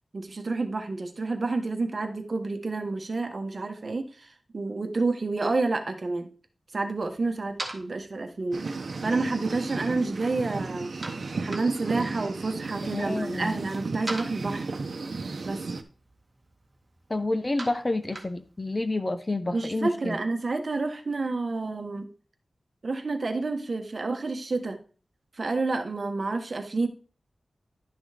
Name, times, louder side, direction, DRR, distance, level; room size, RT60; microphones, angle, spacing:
voice 1, 0.1-6.3 6.7-8.6 9.0-10.9 11.4-14.7 15.4-15.6 19.5-22.1 22.8-24.8 25.3-26.9, right 3 dB, 50° right, 6 dB, 1.2 m, -29 dB
sound 1, 6.9-18.9, right 2 dB, 30° right, 1.9 m, -45 dB
sound 2, 8.5-15.8, right 4 dB, 65° right, 0.9 m, -34 dB
voice 2, 12.8-13.6 17.1-20.2, left 2 dB, 25° left, 9 dB, 0.8 m, -29 dB
11.5 x 6.1 x 3.4 m, 0.38 s
wide cardioid pair, 105°, 0 cm